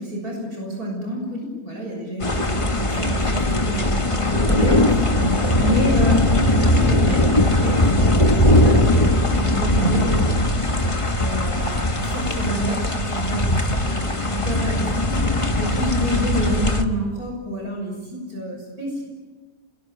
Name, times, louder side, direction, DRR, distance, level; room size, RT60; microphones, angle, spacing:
voice 1, 0.0-15.2 15.6-19.0, equal, 85° right, 0 dB, 7.0 m, -28 dB
sound 1, 2.2-16.8, left 1 dB, 20° left, 1.5 m, -20 dB
sound 2, 4.1-7.2 7.5-11.1 12.1-12.6, equal, 70° right, 6.3 m, -31 dB
28.0 x 21.5 x 9.2 m, 1.3 s
omnidirectional pair, 1.5 m